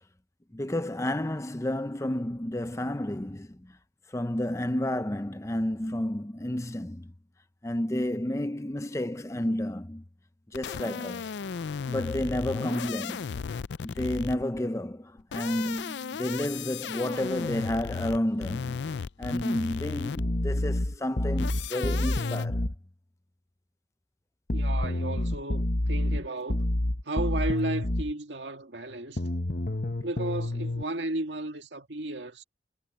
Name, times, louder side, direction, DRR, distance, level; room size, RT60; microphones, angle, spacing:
voice 1, 0.5-3.7 4.1-7.1 7.6-10.0 10.5-11.3 11.8-13.3 13.8-18.8 19.2-22.6, left 1 dB, 15° left, 0.6 m, -31 dB
sound 1, 10.5-14.6 15.2-20.4 21.4-22.5, left 6 dB, 75° left, 0.4 m, -35 dB
sound 2, 20.2-22.8 24.5-28.1 29.2-30.8, left 1 dB, 50° left, 1.0 m, -28 dB
voice 2, 24.5-26.7 27.0-29.2 30.0-32.4, right 2 dB, 85° right, 1.9 m, -34 dB
head